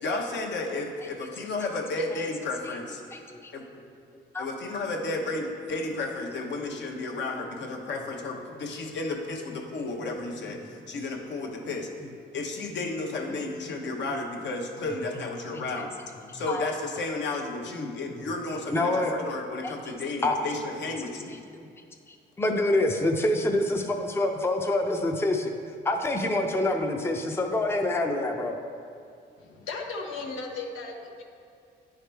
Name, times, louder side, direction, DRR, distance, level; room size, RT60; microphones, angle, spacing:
voice 1, 0.0-3.0 3.5-3.7 4.4-11.9 12.3-15.9 16.3-21.4, left 2 dB, 65° left, 1 dB, 1.0 m, -33 dB
voice 2, 3.1-3.5 4.3-4.5 15.5-15.7 16.3-16.6 18.7-19.1 19.6-19.9 20.2-20.4 21.5-21.7 22.4-25.5 25.8-28.5, left 2 dB, 10° left, 3 dB, 0.6 m, -26 dB
voice 3, 29.4-31.2, left 3 dB, 90° left, 1 dB, 0.9 m, -36 dB
9.8 x 4.8 x 3.4 m, 2.4 s
cardioid pair, 90°, 20 cm